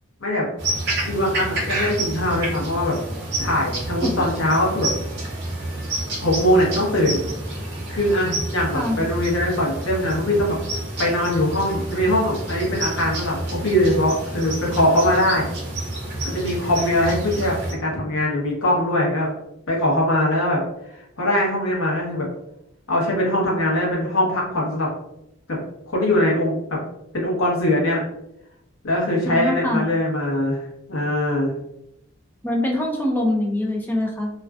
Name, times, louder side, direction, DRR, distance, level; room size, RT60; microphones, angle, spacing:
sound 1, 0.6-17.7, right 1 dB, 50° right, 0.7 m, -29 dB
voice 1, 1.0-2.9 3.4-4.9 6.2-7.2 7.9-10.6 11.0-15.5 16.2-17.5 17.8-19.3 19.7-20.6 20.9-22.3 22.9-24.9 25.5-25.6 25.9-26.8 27.1-28.0 28.8-31.5, left 1 dB, 70° left, -3 dB, 0.9 m, -21 dB
voice 2, 8.7-9.0 29.2-29.9 32.4-34.3, left 1 dB, 10° left, 0 dB, 0.3 m, -23 dB
2.4 x 2.2 x 2.2 m, 0.83 s
head